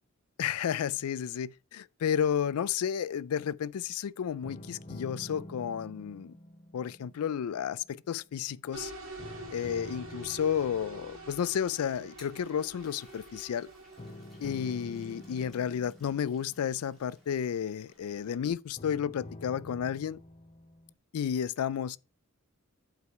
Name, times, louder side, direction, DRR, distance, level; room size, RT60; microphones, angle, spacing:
voice 1, 0.4-6.4 6.7-8.9 9.5-13.7 14.4-20.2 21.1-22.0, left 8 dB, 85° left, 0.3 m, -32 dB
sound 1, 4.4-8.8 9.2-12.5 14.0-18.0 18.8-20.9, left 1 dB, 25° left, 0.6 m, -48 dB
sound 2, 8.7-15.5, right 2 dB, 60° right, 2.5 m, -46 dB
Toilet flush, 12.1-18.4, left 1 dB, ahead, 2.4 m, -61 dB
8.3 x 4.8 x 4.7 m
head